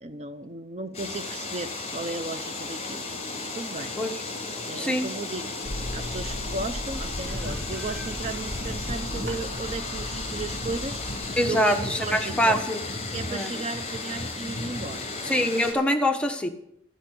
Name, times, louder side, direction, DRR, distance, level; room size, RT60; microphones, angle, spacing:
voice 1, 0.0-3.0 3.3-3.9 4.6-11.0 11.5-12.5 13.1-15.5, right 3 dB, 35° right, 0.6 m, -35 dB
sound 1, 0.9-15.7, left 3 dB, 35° left, 4.5 m, -34 dB
voice 2, 4.7-5.1 11.4-12.8 13.3-13.5 15.2-16.5, equal, 5° left, 1.2 m, -24 dB
sound 2, 5.6-11.3, left 1 dB, 60° right, 4.0 m, -36 dB
sound 3, 6.7-11.9, right 1 dB, 80° right, 4.7 m, -49 dB
12.5 x 10.5 x 7.9 m
head